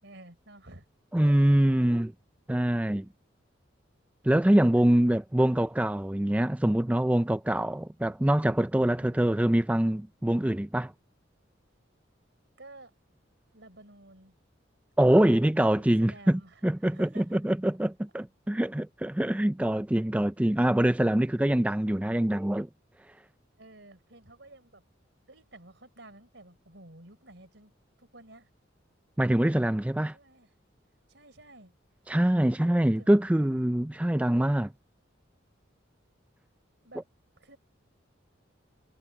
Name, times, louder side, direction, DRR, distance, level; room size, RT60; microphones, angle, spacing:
voice 1, 0.0-0.9 4.7-5.7 6.7-6.8 8.9-9.5 12.6-12.9 13.5-14.4 15.7-17.4 18.6-18.7 20.4-20.6 23.6-24.8 25.3-27.7 28.0-28.5 30.1-30.5 31.1-31.8 33.0-33.2 36.8-37.1 37.4-37.6, right 2 dB, 70° right, 4.6 m, -52 dB
voice 2, 1.1-2.1 2.5-3.1 4.2-10.9 15.0-22.7 29.2-30.1 32.1-34.7, right 1 dB, 5° right, 0.4 m, -24 dB
head